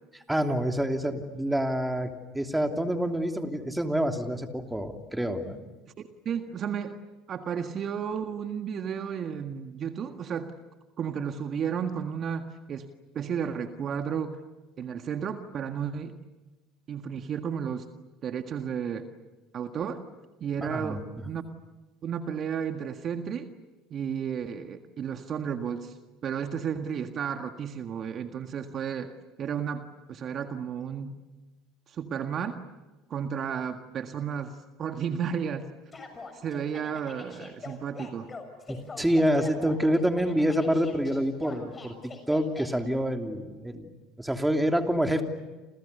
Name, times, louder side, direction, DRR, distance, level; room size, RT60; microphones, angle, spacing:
voice 1, 0.1-5.6 20.7-21.0 38.7-42.0 42.3-43.9 44.2-45.2, equal, 5° right, 5 dB, 3.0 m, -27 dB
voice 2, 6.0-7.0 7.3-10.5 11.0-12.9 13.1-14.4 14.8-16.2 16.9-17.9 18.2-19.1 19.5-20.0 20.4-21.4 22.0-23.5 23.9-26.0 26.2-29.1 29.4-31.2 31.9-32.6 33.1-35.7 36.4-38.3, right 7 dB, 45° right, 7 dB, 1.7 m, -33 dB
sound 1, 35.9-42.7, left 4 dB, 25° left, 6.7 m, -43 dB
29.0 x 28.5 x 6.9 m, 1.2 s
hypercardioid pair, 75°, 0 cm